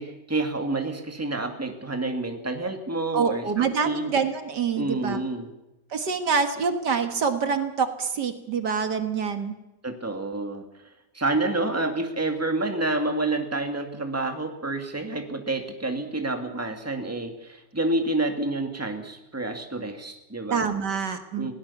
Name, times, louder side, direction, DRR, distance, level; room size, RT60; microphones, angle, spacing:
voice 1, 0.0-4.1 4.8-5.5 9.8-10.6 11.1-20.7 21.4-21.5, right 2 dB, 10° right, 4 dB, 2.1 m, -28 dB
voice 2, 3.1-5.2 5.9-9.5 20.5-21.5, right 6 dB, 70° right, 7 dB, 2.1 m, -26 dB
21.5 x 17.5 x 7.1 m, 0.97 s
omnidirectional pair, 1.9 m